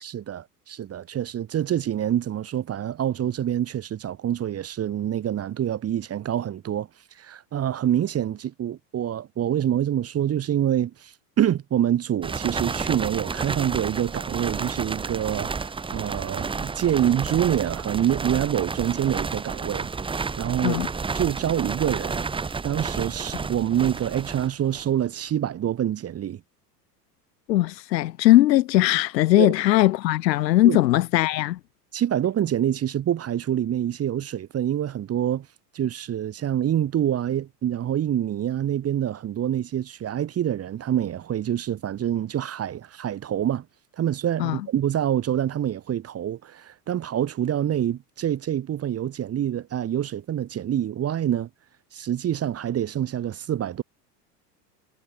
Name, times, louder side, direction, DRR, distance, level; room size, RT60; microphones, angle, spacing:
voice 1, 0.0-6.9 7.2-20.8 21.1-22.2 22.6-26.4 29.4-29.5 30.6-30.8 31.9-35.5 35.7-43.6 44.0-51.5 51.9-53.8, right 10 dB, 30° right, 1.3 m, -26 dB
sound 1, 12.2-25.0, right 4 dB, 10° right, 0.8 m, -31 dB
voice 2, 27.5-31.6 44.4-44.6, left 15 dB, 85° left, 1.1 m, -19 dB
hypercardioid pair, 100°, 49 cm